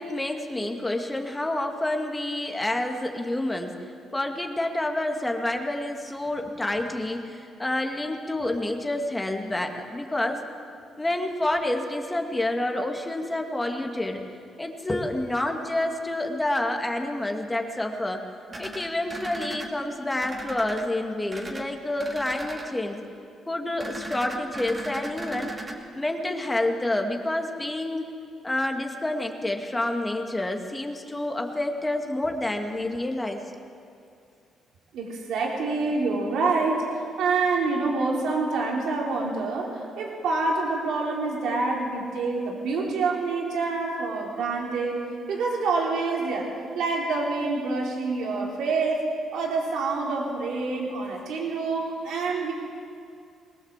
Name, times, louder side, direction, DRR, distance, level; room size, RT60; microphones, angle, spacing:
voice 1, 0.0-3.8 4.1-10.4 11.0-14.2 14.6-18.2 18.6-23.0 23.5-25.5 25.9-28.1 28.4-33.4, left 1 dB, 15° left, 3 dB, 2.3 m, -28 dB
sound 1, 18.5-19.7 20.2-20.8 21.3-21.6 22.0-22.7 23.8-25.7, right 1 dB, 30° right, 2.9 m, -37 dB
voice 2, 34.9-45.0 45.3-49.0 49.3-52.5, right 3 dB, 80° right, -1 dB, 3.8 m, -27 dB
22.0 x 19.0 x 7.5 m, 2.4 s
cardioid pair, 90°, 0 cm